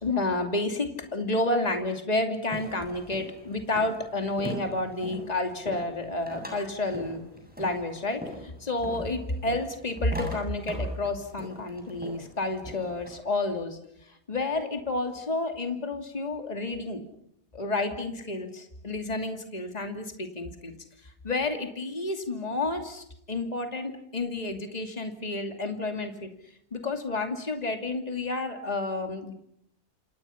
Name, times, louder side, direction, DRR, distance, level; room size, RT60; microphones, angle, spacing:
voice 1, 0.0-7.2 7.6-13.8 14.3-17.0 17.5-20.7 21.2-26.3 26.7-29.3, left 2 dB, 25° left, 5 dB, 2.7 m, -30 dB
sound 1, 2.5-13.1, equal, 5° right, 7.6 m, -42 dB
28.5 x 27.5 x 5.8 m, 0.74 s
omnidirectional pair, 1.7 m